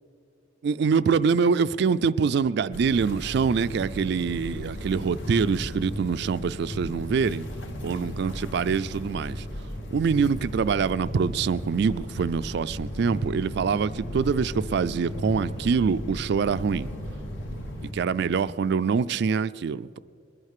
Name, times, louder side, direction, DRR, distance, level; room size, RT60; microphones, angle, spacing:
voice 1, 0.6-7.5 7.8-9.4 9.9-16.9 17.8-20.0, right 5 dB, 60° right, 15 dB, 0.3 m, -25 dB
sound 1, 2.7-17.9, equal, 75° left, 1.8 m, -36 dB
21.0 x 9.7 x 6.6 m, 2.4 s
head